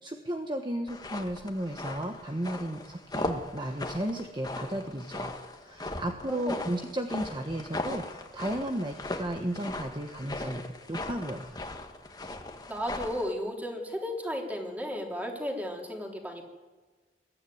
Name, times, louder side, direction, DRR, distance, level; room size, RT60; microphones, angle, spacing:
voice 1, 0.0-5.3 5.6-10.6 10.9-11.5, right 1 dB, 25° right, 4 dB, 1.3 m, -34 dB
sound 1, 0.9-13.3, left 2 dB, 20° left, 1.6 m, -38 dB
voice 2, 6.3-6.6 12.7-16.4, equal, 10° right, 1 dB, 3.5 m, -34 dB
22.5 x 13.5 x 9.5 m, 1.3 s
head